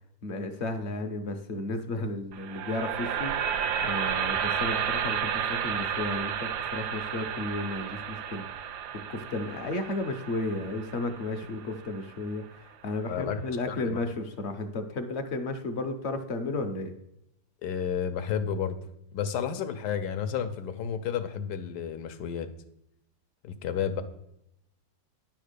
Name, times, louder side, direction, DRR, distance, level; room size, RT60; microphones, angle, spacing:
voice 1, 0.2-3.5 3.8-8.7 9.1-16.9, left 2 dB, 55° left, 7 dB, 0.8 m, -33 dB
sound 1, 2.3-12.4, right 8 dB, 80° right, 1.2 m, -32 dB
voice 2, 13.1-14.0 17.6-18.8 19.1-22.5 23.4-24.0, left 8 dB, 80° left, 8 dB, 1.3 m, -31 dB
10.0 x 3.5 x 6.6 m, 0.79 s
omnidirectional pair, 1.8 m